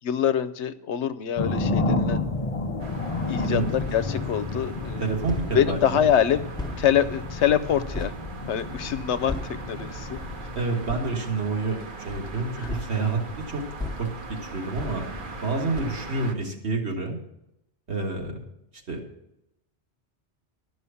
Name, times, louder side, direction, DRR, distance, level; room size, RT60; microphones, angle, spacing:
voice 1, 0.0-2.2 3.3-5.1 5.5-6.5 6.8-8.1 8.5-9.3 9.7-10.2 12.6-12.7, left 9 dB, 75° left, 13 dB, 1.0 m, -25 dB
sound 1, 1.4-10.7, left 2 dB, 35° left, 0.7 m, -31 dB
sound 2, 2.8-16.3, right 3 dB, 50° right, 1.1 m, -40 dB
sound 3, 3.4-4.3 4.6-8.2 8.6-9.7 10.1-10.4 10.8-11.2 12.0-15.5 15.7-16.1, left 2 dB, 5° left, 0.9 m, -37 dB
voice 2, 5.0-6.1 10.5-13.2 13.5-13.6 14.0-14.1 14.4-17.2 17.9-18.4 18.9-19.0, right 3 dB, 70° right, 1 dB, 2.1 m, -28 dB
12.5 x 6.2 x 7.0 m, 0.83 s
omnidirectional pair, 1.2 m